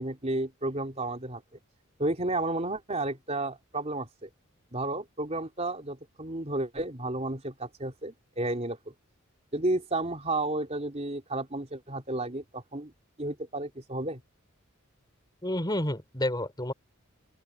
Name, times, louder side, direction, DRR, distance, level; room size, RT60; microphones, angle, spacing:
voice 1, 0.0-1.6 2.0-4.3 4.7-8.9 9.5-12.9 13.2-14.2, right 2 dB, 30° right, 3.6 m, -32 dB
voice 2, 15.4-16.7, left 1 dB, 20° left, 3.9 m, -30 dB
open air
head